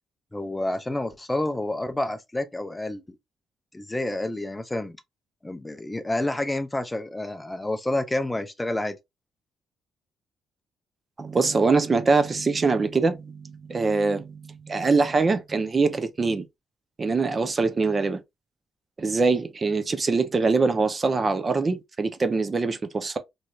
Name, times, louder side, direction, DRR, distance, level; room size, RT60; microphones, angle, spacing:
voice 1, 0.3-3.2 3.7-5.0 5.4-9.0, left 1 dB, 15° left, 0.5 m, -29 dB
voice 2, 11.2-16.5 17.0-18.2 19.0-23.2, right 4 dB, 35° right, 0.5 m, -23 dB
3.1 x 2.7 x 2.3 m
cardioid pair, 90°, 0 cm